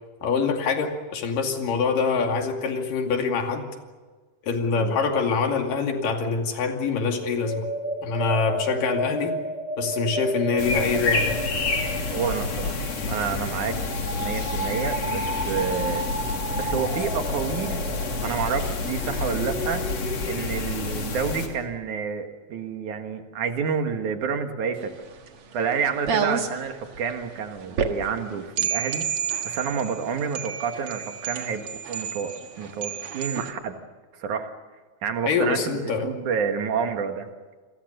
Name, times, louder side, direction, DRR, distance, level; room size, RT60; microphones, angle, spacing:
voice 1, 0.2-3.8 4.4-7.7 8.0-9.4 9.8-11.4 35.3-36.1, left 5 dB, 75° left, 3 dB, 4.1 m, -25 dB
sound 1, 7.1-20.4, right 1 dB, 5° right, 1.7 m, -33 dB
sound 2, 10.6-21.5, left 3 dB, 50° left, 3.9 m, -29 dB
voice 2, 12.1-12.8 13.1-16.0 16.5-17.8 18.2-19.9 20.3-24.9 25.5-29.1 29.4-33.8 34.2-34.5 35.0-37.3, right 6 dB, 65° right, 6 dB, 3.1 m, -29 dB
sound 3, 24.8-33.5, right 6 dB, 50° right, 2.3 m, -31 dB
29.5 x 22.0 x 6.7 m, 1.4 s
omnidirectional pair, 3.9 m